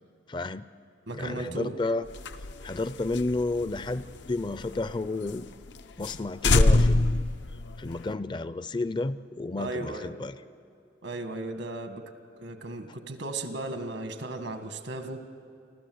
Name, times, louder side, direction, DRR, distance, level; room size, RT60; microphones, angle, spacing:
voice 1, 0.3-0.6 1.1-2.1 2.6-5.5 6.0-7.2 7.8-10.3, left 2 dB, 25° left, 15 dB, 0.4 m, -31 dB
voice 2, 1.1-1.8 9.6-10.1 11.0-12.0 12.4-15.3, right 2 dB, 90° right, 7 dB, 1.6 m, -36 dB
sound 1, 2.1-4.9 5.3-5.4 5.7-5.8 6.0-6.2 6.4-8.1, left 2 dB, 80° left, 0.7 m, -25 dB
28.5 x 13.5 x 7.8 m, 2.4 s
head